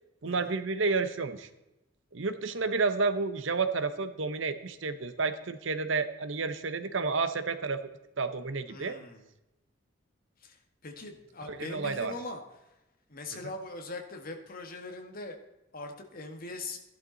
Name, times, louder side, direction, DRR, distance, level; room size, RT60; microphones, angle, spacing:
voice 1, 0.2-1.5 2.1-7.8 8.2-9.0 11.4-12.2 13.3-13.5, right 4 dB, 70° right, 10 dB, 1.0 m, -30 dB
voice 2, 8.7-9.2 10.4-10.6 10.8-12.4 13.1-15.4 15.7-16.8, left 2 dB, 45° left, 4 dB, 1.8 m, -41 dB
14.5 x 12.0 x 4.1 m, 0.94 s
head